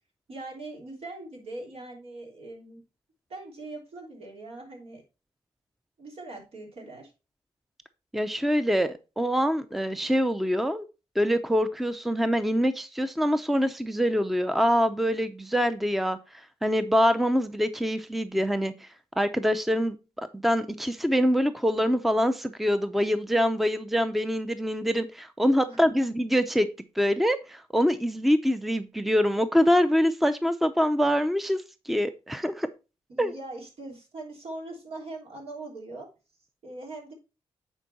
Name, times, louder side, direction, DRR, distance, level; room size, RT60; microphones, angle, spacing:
voice 1, 0.3-2.8 3.3-5.0 6.0-7.1 25.7-26.1 33.1-36.1 36.6-37.1, right 2 dB, 70° right, 0 dB, 3.2 m, -41 dB
voice 2, 8.1-10.9 11.2-18.9 19.2-26.7 27.0-32.7 33.2-33.3, equal, ahead, 11 dB, 0.6 m, -25 dB
9.0 x 4.5 x 4.1 m, 0.30 s
cardioid pair, 90°, 11 cm